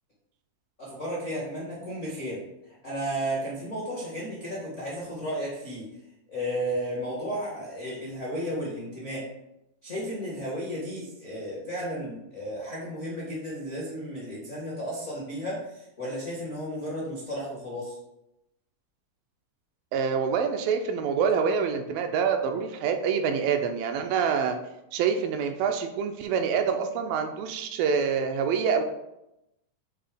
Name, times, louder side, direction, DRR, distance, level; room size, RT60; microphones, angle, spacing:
voice 1, 0.8-5.9 6.3-9.3 9.8-18.0, equal, 50° left, -6 dB, 0.8 m, -33 dB
voice 2, 19.9-24.6 24.9-28.8, right 6 dB, 80° right, 5 dB, 2.2 m, -26 dB
7.4 x 2.8 x 4.9 m, 0.88 s
omnidirectional pair, 4.2 m